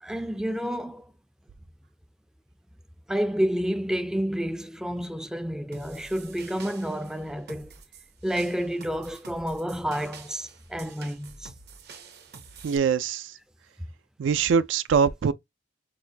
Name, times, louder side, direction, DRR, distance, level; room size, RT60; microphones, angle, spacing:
voice 1, 0.0-1.0 3.1-7.7 8.2-11.5, equal, 5° right, 0.3 m, -29 dB
sound 1, 5.7-12.8, right 5 dB, 60° right, 0.8 m, -48 dB
voice 2, 12.6-13.3 14.2-15.3, right 6 dB, 80° right, 0.4 m, -23 dB
6.1 x 2.2 x 2.7 m
head